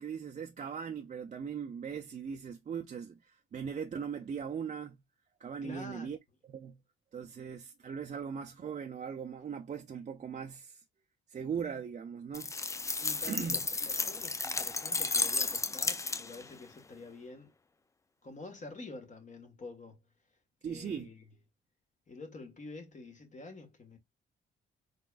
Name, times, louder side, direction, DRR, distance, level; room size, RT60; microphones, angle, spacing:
voice 1, 0.0-5.0 5.4-6.2 6.5-6.8 7.1-10.8 11.3-12.5 13.3-13.6 20.6-21.1, right 7 dB, 40° right, 0.5 m, -39 dB
voice 2, 5.6-6.1 13.0-17.5 18.2-20.0 20.6-21.2 22.1-24.0, left 3 dB, 40° left, 1.6 m, -48 dB
sound 1, 12.3-16.5, left 3 dB, 15° left, 0.4 m, -33 dB
3.9 x 3.5 x 2.4 m
cardioid pair, 90°, 20 cm